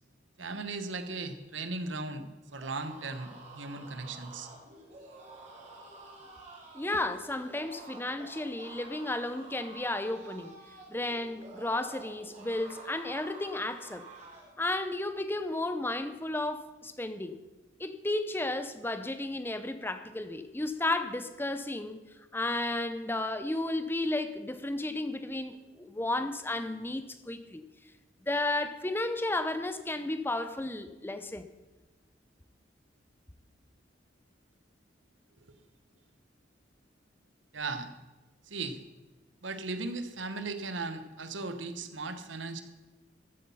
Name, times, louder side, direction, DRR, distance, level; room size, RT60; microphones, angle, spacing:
voice 1, 0.4-2.2 2.5-4.5 35.4-35.5 37.5-37.9 38.5-38.8 39.4-42.6, right 3 dB, 90° right, 9 dB, 1.2 m, -37 dB
sound 1, 2.5-14.6, right 2 dB, 40° right, 3.0 m, -50 dB
voice 2, 6.7-10.5 10.9-14.1 14.6-17.4 17.8-22.0 22.3-27.6 28.2-31.5, left 2 dB, 10° left, 10 dB, 0.7 m, -33 dB
14.0 x 8.6 x 5.6 m, 1.2 s
head